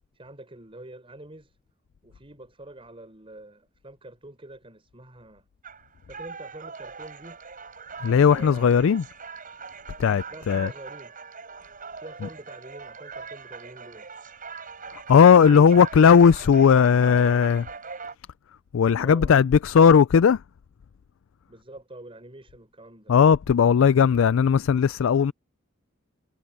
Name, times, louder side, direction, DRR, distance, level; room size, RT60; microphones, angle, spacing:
voice 1, 0.2-1.5 2.0-5.5 6.1-7.4 8.1-8.8 10.3-11.1 12.0-14.1 15.1-15.9 19.0-19.3 21.5-23.1, right 1 dB, 30° right, 5.3 m, -45 dB
sound 1, 5.6-18.1, right 5 dB, 45° right, 7.3 m, -41 dB
voice 2, 8.0-9.0 10.0-10.7 15.1-17.7 18.7-20.4 23.1-25.3, left 7 dB, 75° left, 0.4 m, -17 dB
head